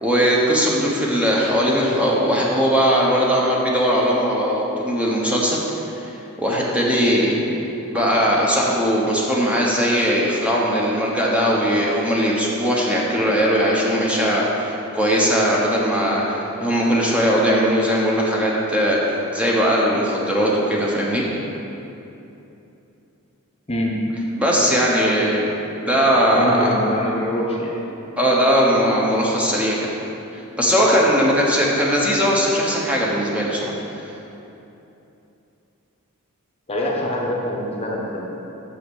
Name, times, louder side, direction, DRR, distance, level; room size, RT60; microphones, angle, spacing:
voice 1, 0.0-5.6 6.0-6.1 6.4-7.4 7.9-21.2 24.4-25.5 25.9-26.6 28.2-29.7 30.6-34.0, equal, 5° right, -4 dB, 0.9 m, -19 dB
voice 2, 26.3-27.7 36.7-38.3, left 1 dB, 30° left, -2 dB, 0.9 m, -24 dB
6.5 x 5.6 x 6.3 m, 2.9 s
head